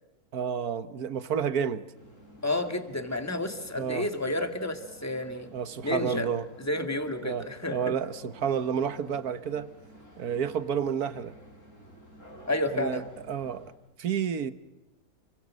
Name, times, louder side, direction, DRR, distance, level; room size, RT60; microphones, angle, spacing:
voice 1, 0.3-1.8 3.8-4.1 5.5-6.4 7.2-9.7 10.2-11.3 12.7-13.7 14.0-14.5, right 7 dB, 70° right, 1.7 m, -30 dB
sound 1, 1.9-13.7, right 1 dB, 50° left, 6.1 m, -53 dB
voice 2, 2.4-5.5 5.8-6.3 6.6-7.8 12.5-13.1, left 2 dB, 10° left, 2.2 m, -30 dB
29.5 x 24.0 x 6.4 m
omnidirectional pair, 1.7 m